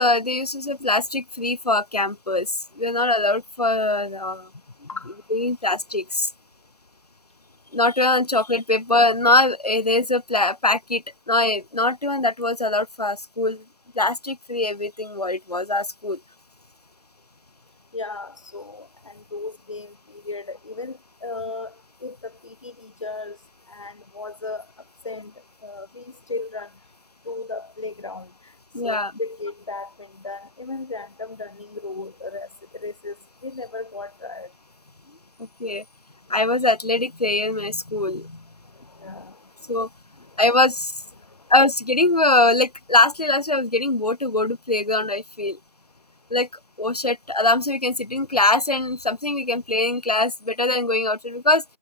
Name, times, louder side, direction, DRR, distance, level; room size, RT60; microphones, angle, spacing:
voice 1, 0.0-4.5 5.3-6.3 7.7-13.6 13.9-16.2 28.7-29.1 35.4-35.8 36.3-38.4 39.7-39.9 40.4-41.0 41.5-45.6 46.3-46.5 46.8-51.6, left 2 dB, 75° left, 1.6 m, -22 dB
voice 2, 17.9-19.9 20.2-21.7 22.0-23.4 23.7-24.6 25.0-25.3 25.6-26.7 27.3-28.5 28.8-32.5 32.8-33.1 33.4-34.5 39.0-39.3, left 3 dB, 50° left, 3.3 m, -35 dB
figure-of-eight pair, 160°, 21 cm